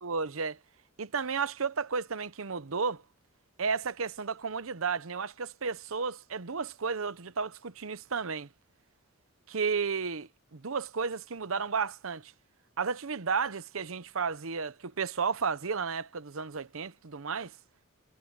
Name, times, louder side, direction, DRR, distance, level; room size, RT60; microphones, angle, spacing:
voice 1, 0.0-0.6 1.0-3.0 3.6-8.5 9.5-12.3 12.8-17.5, right 5 dB, 80° right, 0.8 m, -33 dB
head